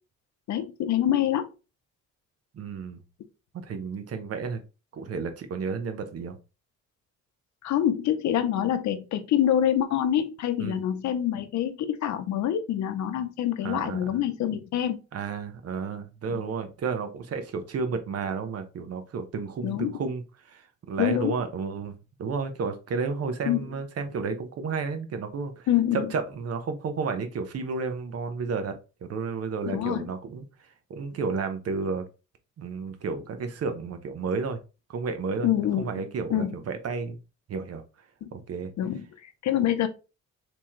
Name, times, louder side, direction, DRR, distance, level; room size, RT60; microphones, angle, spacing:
voice 1, 0.5-1.5 7.6-15.0 16.3-16.4 19.6-19.9 21.0-21.4 23.5-23.6 25.7-26.1 29.7-30.1 35.4-36.6 38.2-38.3 38.8-39.9, left 10 dB, 70° left, 0.7 m, -26 dB
voice 2, 2.5-3.0 3.6-4.6 4.9-6.4 10.6-10.8 13.6-14.2 15.1-20.2 20.5-25.7 26.1-30.4 30.9-32.0 32.6-34.6 34.9-35.5 35.8-37.2 37.5-37.8 38.3-38.7, right 5 dB, 55° right, 0.8 m, -32 dB
3.4 x 3.0 x 3.0 m
cardioid pair, 90°, 30 cm